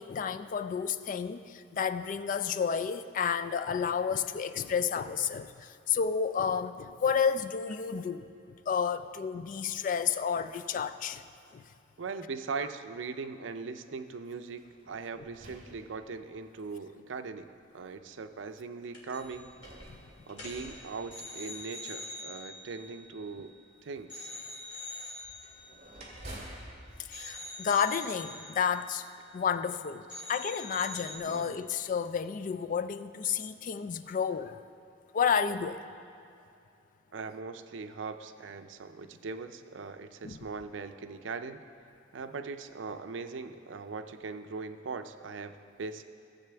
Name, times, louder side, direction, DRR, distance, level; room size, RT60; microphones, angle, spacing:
voice 1, 0.0-8.3 8.7-11.2 11.5-11.6 19.9-20.0 27.1-29.0 29.3-34.6 35.1-35.8 40.2-40.4, left 7 dB, 45° left, 12 dB, 0.3 m, -31 dB
voice 2, 12.0-19.6 20.3-23.5 23.8-24.3 26.4-26.5 31.3-31.6 37.1-41.6 42.1-46.0, right 4 dB, 85° right, 9 dB, 0.5 m, -40 dB
sound 1, 14.6-16.5 17.3-17.4 19.2-21.8 25.2-28.3, right 1 dB, 35° right, 2.0 m, -50 dB
sound 2, 18.9-19.4 19.6-19.9 20.3-23.7 24.1-26.7 27.1-29.8 30.1-31.2, left 2 dB, 85° left, 2.0 m, -45 dB
15.5 x 7.5 x 3.4 m, 2.5 s
head